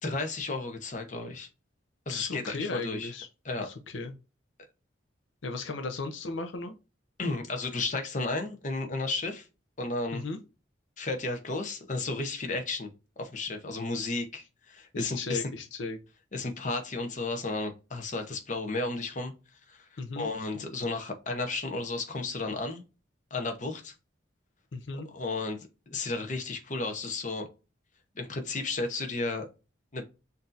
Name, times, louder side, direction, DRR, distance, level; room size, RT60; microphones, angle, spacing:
voice 1, 0.0-1.5 2.1-3.1 3.4-3.7 7.2-9.5 9.8-10.2 11.0-12.9 13.2-15.4 16.3-19.3 19.7-19.9 20.2-22.8 23.3-23.9 25.1-25.6 25.9-27.5 28.2-29.5 29.9-30.1, left 3 dB, 40° left, 0.8 m, -33 dB
voice 2, 2.1-3.3 3.6-4.1 5.4-6.7 10.1-10.4 14.9-16.0 20.0-20.3 20.5-20.6 24.7-25.1, left 3 dB, 75° left, 0.6 m, -36 dB
6.0 x 2.7 x 2.5 m
head